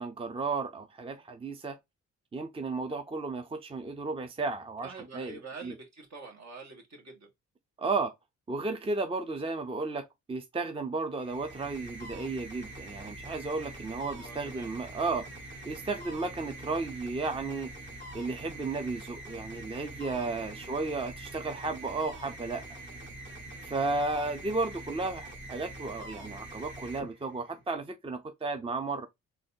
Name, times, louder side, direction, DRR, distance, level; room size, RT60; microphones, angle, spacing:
voice 1, 0.0-1.8 2.3-4.9 5.1-5.3 5.6-5.7 7.8-8.1 8.5-15.3 15.7-17.7 18.1-22.8 23.6-29.1, right 3 dB, 20° right, 0.5 m, -33 dB
voice 2, 4.8-7.3 8.6-8.7 14.2-14.7 20.6-20.8, right 4 dB, 60° right, 1.8 m, -46 dB
sound 1, 11.1-27.7, right 1 dB, 35° right, 1.5 m, -44 dB
4.0 x 3.0 x 2.7 m
cardioid pair, 80°, 31 cm